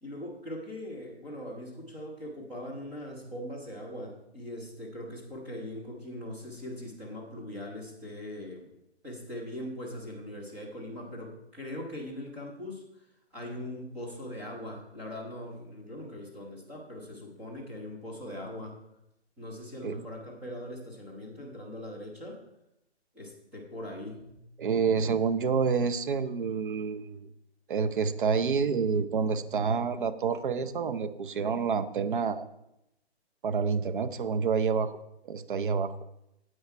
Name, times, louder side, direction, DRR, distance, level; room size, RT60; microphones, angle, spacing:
voice 1, 0.0-8.7 9.0-13.1 13.3-18.8 19.4-22.4 23.1-24.2, left 1 dB, 5° right, -5 dB, 0.6 m, -41 dB
voice 2, 24.6-27.3 27.7-32.4 33.4-34.9 35.2-36.0, right 5 dB, 50° right, 11 dB, 0.7 m, -28 dB
9.4 x 8.0 x 4.3 m, 0.85 s
hypercardioid pair, 160°, 33 cm